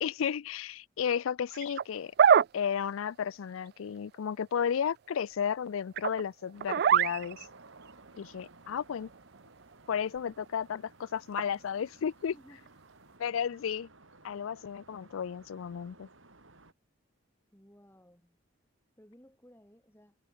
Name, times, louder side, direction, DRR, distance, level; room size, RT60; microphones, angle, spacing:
voice 1, 0.0-2.1 2.5-7.4 8.2-9.1 9.9-12.3 13.2-13.9 14.2-16.1, left 7 dB, 90° left, 0.4 m, -33 dB
sound 1, 1.5-1.8 2.2-2.5 6.0-6.2 6.6-7.8 8.4-8.5 10.2-10.3 11.4-11.5 12.7-12.8, right 8 dB, 50° right, 0.3 m, -23 dB
sound 2, 6.5-16.7, right 2 dB, 80° right, 6.3 m, -57 dB
voice 2, 17.5-18.4 19.0-20.2, equal, 10° left, 7.9 m, -58 dB
head